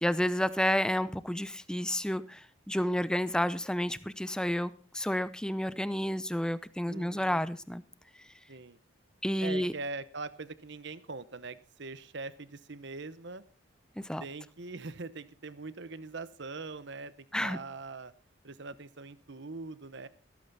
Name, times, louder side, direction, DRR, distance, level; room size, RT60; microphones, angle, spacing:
voice 1, 0.0-7.8 9.2-9.7 14.0-14.2 17.3-17.6, equal, 5° left, 15 dB, 0.6 m, -30 dB
voice 2, 6.9-7.5 8.5-8.8 9.4-13.4 14.2-18.1 18.4-20.1, right 3 dB, 60° right, 15 dB, 0.9 m, -42 dB
15.5 x 14.0 x 4.1 m, 0.34 s
head